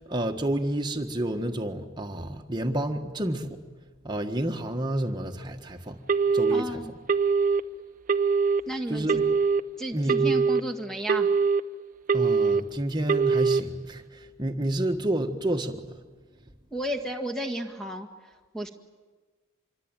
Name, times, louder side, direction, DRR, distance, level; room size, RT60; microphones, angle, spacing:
voice 1, 0.0-3.6 4.0-6.0 6.3-6.8 8.9-9.3 9.9-10.3 12.1-15.9, right 1 dB, 20° right, 4 dB, 1.6 m, -29 dB
Telephone, 6.1-6.6 7.1-7.6 8.1-8.6 9.1-9.6 10.1-10.6 11.1-11.6 12.1-12.6 13.1-13.6, right 5 dB, 35° right, 0.7 m, -22 dB
voice 2, 6.5-6.9 8.6-9.2 9.8-11.3 16.7-18.7, right 1 dB, 5° left, 4 dB, 1.7 m, -33 dB
26.5 x 24.0 x 9.1 m, 1.4 s
head